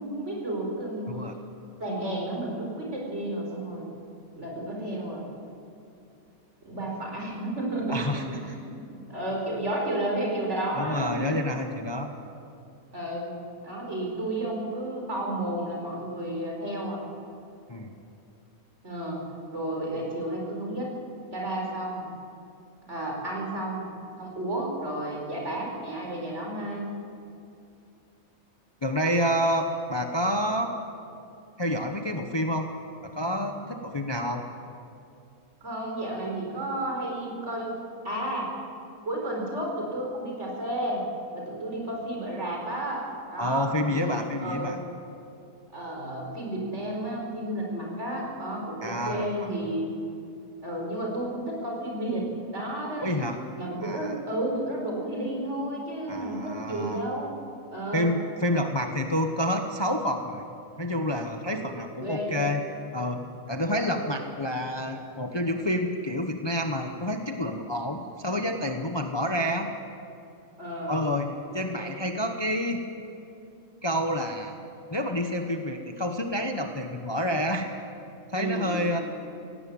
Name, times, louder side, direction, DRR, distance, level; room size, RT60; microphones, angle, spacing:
voice 1, 0.0-1.2 1.8-3.9 4.3-5.3 6.6-8.0 8.3-11.4 12.9-13.3 13.6-17.0 18.8-19.3 19.5-20.9 21.3-22.1 22.9-23.9 24.2-26.9 35.6-37.8 38.0-38.5 39.0-41.0 41.3-44.8 45.7-49.9 50.6-53.3 53.6-57.4 57.7-58.1 61.5-61.7 62.0-62.5 63.7-64.1 70.6-71.1 71.7-72.0 78.3-79.0, right 1 dB, 55° right, -2 dB, 5.1 m, -32 dB
voice 2, 7.9-8.5 10.8-12.1 17.7-17.9 28.8-30.7 31.6-32.7 33.0-34.4 43.4-44.8 48.8-49.3 53.0-53.4 53.8-54.1 56.1-57.0 57.9-60.4 60.8-62.6 62.9-69.7 70.9-72.8 73.8-74.6 74.9-77.7 78.3-79.0, equal, 20° left, 4 dB, 0.9 m, -28 dB
18.5 x 17.0 x 8.6 m, 2.6 s
omnidirectional pair, 1.5 m